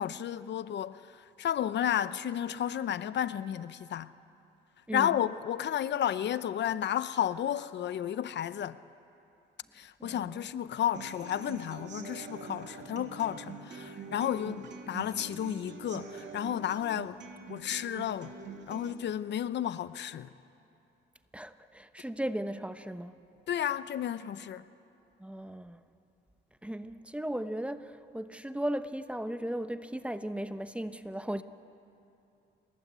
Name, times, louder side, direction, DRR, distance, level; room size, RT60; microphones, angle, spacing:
voice 1, 0.0-4.1 4.9-8.8 9.7-17.2 17.5-18.3 18.7-20.3 23.5-24.6, left 10 dB, 65° left, 0.8 m, -32 dB
voice 2, 4.9-5.2 10.0-10.5 21.3-23.1 25.2-25.8 26.6-31.4, right 1 dB, 5° right, 1.1 m, -36 dB
Human voice / Acoustic guitar, 10.9-18.9, right 5 dB, 65° right, 3.2 m, -45 dB
29.0 x 21.0 x 8.3 m
cardioid pair, 90°, 20 cm